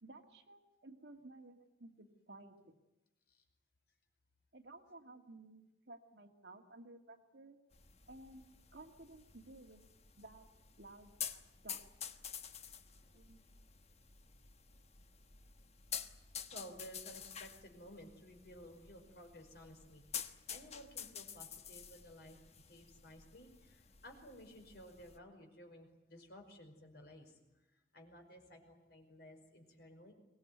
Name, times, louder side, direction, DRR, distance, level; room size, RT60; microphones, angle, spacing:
voice 1, 0.0-2.8 4.5-7.6 8.1-9.8 10.2-10.5 10.8-11.8 13.1-13.4, right 2 dB, 65° right, 4 dB, 2.3 m, -56 dB
sound 1, 7.7-25.2, left 7 dB, 35° left, 1.2 m, -50 dB
voice 2, 16.5-22.4 22.7-30.1, equal, 60° left, 3 dB, 5.3 m, -56 dB
24.0 x 19.0 x 9.5 m, 1.0 s
head